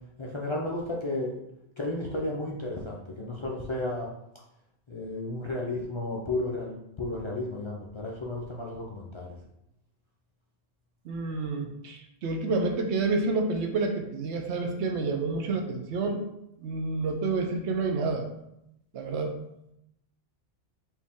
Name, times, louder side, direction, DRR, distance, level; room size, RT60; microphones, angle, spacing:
voice 1, 0.2-1.4 1.8-4.1 4.9-9.3, left 2 dB, 40° left, -3 dB, 0.4 m, -33 dB
voice 2, 11.1-16.2 16.6-18.3 18.9-19.4, right 3 dB, 90° right, 4 dB, 1.0 m, -29 dB
4.4 x 2.7 x 3.5 m, 0.81 s
omnidirectional pair, 1.1 m